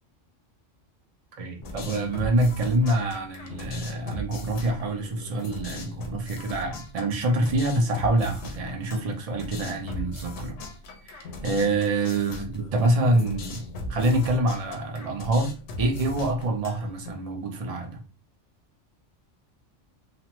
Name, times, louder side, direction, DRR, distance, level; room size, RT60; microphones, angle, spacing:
voice 1, 1.4-10.6 11.1-18.0, right 1 dB, 45° right, 0.5 m, -26 dB
sound 1, 1.6-17.1, left 1 dB, 80° left, 1.0 m, -39 dB
3.0 x 2.1 x 2.9 m
omnidirectional pair, 1.2 m